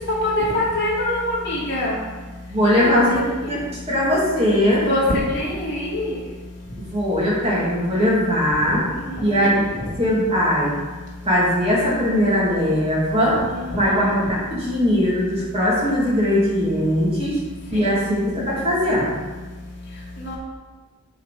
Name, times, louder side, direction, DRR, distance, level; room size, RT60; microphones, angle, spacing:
voice 1, 0.2-2.0 2.7-3.3 4.8-6.1 9.0-9.5 9.7-9.9 13.5-13.7 17.7-18.1 20.2-20.4, left 1 dB, 60° left, -6 dB, 2.5 m, -24 dB
voice 2, 2.5-3.2 3.5-3.6 3.9-4.8 6.8-8.8 9.2-9.5 10.0-10.7 11.2-13.4 13.7-17.4 17.7-19.2, equal, 30° right, -6 dB, 2.5 m, -20 dB
9.0 x 4.7 x 5.1 m, 1.3 s
head